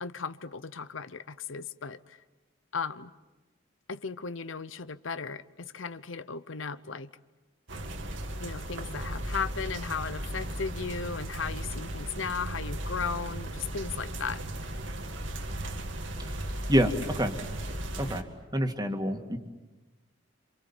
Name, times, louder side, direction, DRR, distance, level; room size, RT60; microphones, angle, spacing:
voice 1, 0.0-2.2 2.7-3.1 3.9-7.1 8.4-14.4 17.9-18.2, left 5 dB, 80° left, 0.9 m, -36 dB
sound 1, 7.7-18.2, right 1 dB, 70° right, 2.2 m, -36 dB
voice 2, 16.7-17.3 18.0-18.3 18.5-19.4, equal, 20° right, 2.3 m, -27 dB
27.5 x 27.5 x 7.2 m
head